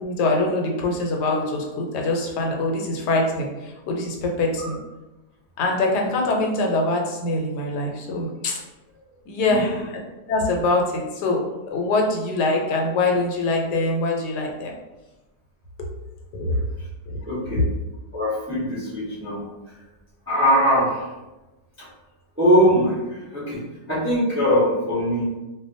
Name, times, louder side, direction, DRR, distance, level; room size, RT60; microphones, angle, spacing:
voice 1, 0.0-3.5 3.9-4.8 5.6-8.6 9.3-9.8 10.3-11.4 11.7-14.7 16.3-16.6, left 2 dB, 90° left, 1 dB, 1.2 m, -23 dB
voice 2, 9.5-9.8 17.2-17.7 18.1-19.7 20.3-21.1 21.8-21.9 22.4-25.3, equal, 20° right, -9 dB, 0.3 m, -22 dB
2.5 x 2.2 x 2.5 m, 1.1 s
omnidirectional pair, 1.7 m